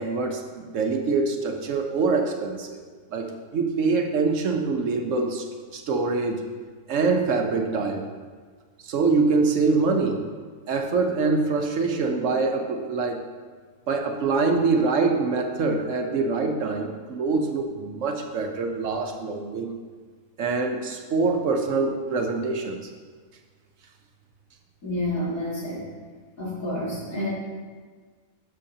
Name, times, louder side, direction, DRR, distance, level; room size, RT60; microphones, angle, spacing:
voice 1, 0.0-2.8 3.1-5.4 5.7-6.4 6.9-8.1 8.8-10.2 10.7-13.2 13.9-19.7 20.4-22.9, right 4 dB, 65° right, 3 dB, 1.0 m, -24 dB
voice 2, 24.8-25.9 26.4-27.3, left 1 dB, 75° left, -7 dB, 2.9 m, -29 dB
12.0 x 6.4 x 2.8 m, 1.5 s
omnidirectional pair, 1.5 m